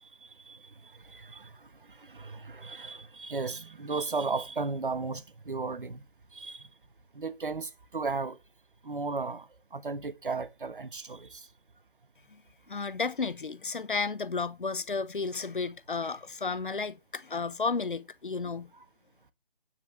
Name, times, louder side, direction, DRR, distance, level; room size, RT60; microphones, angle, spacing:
voice 1, 0.0-6.0 6.3-6.7 7.1-8.4 8.8-11.5, right 4 dB, 65° right, 1.2 m, -35 dB
voice 2, 12.7-18.7, left 4 dB, 60° left, 0.9 m, -33 dB
9.3 x 8.7 x 3.1 m
figure-of-eight pair, 155°, 29 cm